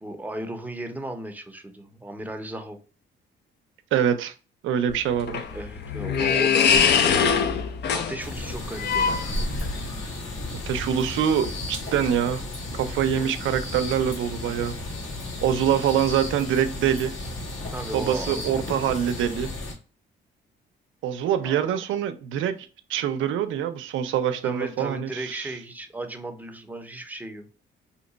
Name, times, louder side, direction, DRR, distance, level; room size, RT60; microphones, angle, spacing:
voice 1, 0.0-2.8 5.5-9.5 17.7-18.5 21.4-21.8 24.4-27.5, right 1 dB, 10° right, 0.6 m, -36 dB
voice 2, 3.9-4.3 4.6-5.4 10.7-12.4 12.8-14.7 15.4-17.1 17.9-19.5 21.0-22.6 22.9-25.5, right 9 dB, 80° right, 0.5 m, -24 dB
sound 1, 4.9-9.9, left 6 dB, 60° left, 0.5 m, -23 dB
sound 2, 8.2-19.7, left 2 dB, 75° left, 1.4 m, -34 dB
2.8 x 2.2 x 3.9 m
cardioid pair, 90°, 20 cm